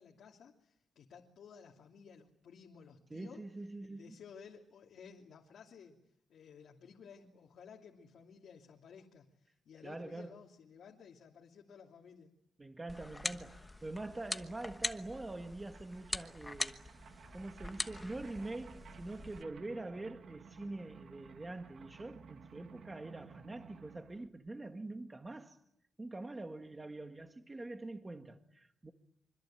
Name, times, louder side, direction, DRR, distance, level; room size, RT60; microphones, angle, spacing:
voice 1, 0.0-3.4 3.9-6.0 6.3-12.3, left 6 dB, 75° left, 2.9 m, -55 dB
voice 2, 3.1-4.2 9.8-10.3 12.6-16.8 17.3-25.6 26.0-28.9, right 2 dB, 15° right, 1.7 m, -44 dB
sound 1, 12.9-19.4, left 2 dB, 15° left, 1.2 m, -43 dB
sound 2, 13.1-13.2 13.4-24.3, right 6 dB, 65° right, 1.8 m, -57 dB
26.0 x 25.0 x 9.0 m
wide cardioid pair, 150°, 0 cm